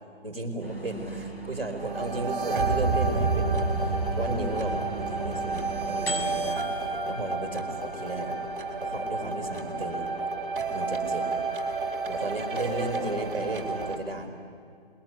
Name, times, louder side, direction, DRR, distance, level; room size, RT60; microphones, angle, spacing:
voice 1, 0.2-8.4 8.8-10.1 10.7-11.3 12.1-14.3, right 2 dB, 5° left, -9 dB, 2.6 m, -34 dB
sound 1, 0.6-9.5, right 2 dB, 65° left, 7.2 m, -40 dB
sound 2, 1.8-14.0, right 3 dB, 10° right, 2.9 m, -30 dB
27.0 x 21.5 x 9.2 m, 2.4 s
hypercardioid pair, 180°, 32 cm